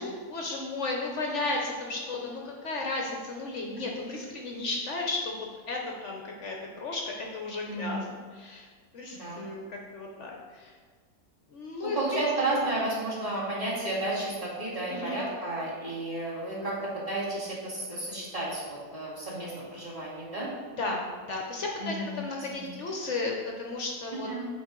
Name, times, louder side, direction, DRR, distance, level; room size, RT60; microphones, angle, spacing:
voice 1, 0.0-8.7 8.9-10.7 11.5-12.2 14.9-15.2 20.8-21.0 21.3-24.5, left 2 dB, 55° left, 0 dB, 0.8 m, -34 dB
voice 2, 7.6-8.0 9.1-9.4 11.8-20.5 21.8-22.1 22.5-22.6 24.2-24.5, right 2 dB, 20° right, -8 dB, 1.9 m, -32 dB
8.3 x 4.1 x 3.7 m, 1.6 s
omnidirectional pair, 1.8 m